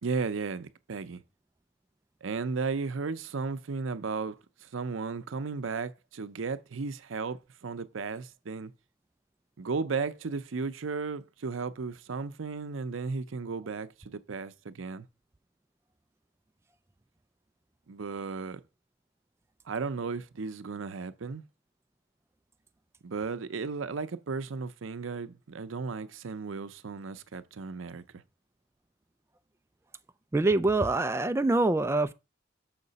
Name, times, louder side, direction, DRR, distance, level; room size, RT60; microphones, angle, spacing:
voice 1, 0.0-1.2 2.2-8.7 9.6-15.1 17.9-18.6 19.7-21.4 23.0-28.2, right 4 dB, 85° right, 0.6 m, -35 dB
voice 2, 30.3-32.1, right 2 dB, 15° right, 0.4 m, -25 dB
6.6 x 5.8 x 4.0 m
head